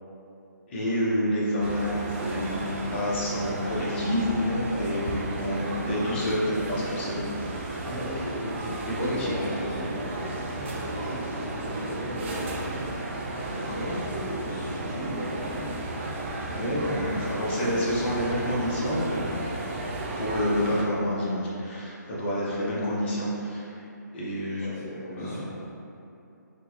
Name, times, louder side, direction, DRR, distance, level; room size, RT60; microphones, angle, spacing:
voice 1, 0.7-7.3 9.0-9.4 9.7-9.8 13.5-14.1 15.0-15.1 16.5-19.4 20.2-23.8 24.1-24.7 25.2-25.4, equal, 35° left, -7 dB, 0.8 m, -28 dB
sound 1, 1.6-20.9, right 2 dB, 40° right, 0.4 m, -34 dB
voice 2, 7.8-12.7 14.0-15.8 24.6-25.5, equal, 10° left, -21 dB, 1.3 m, -37 dB
3.7 x 2.2 x 3.0 m, 2.8 s
hypercardioid pair, 155°, 10 cm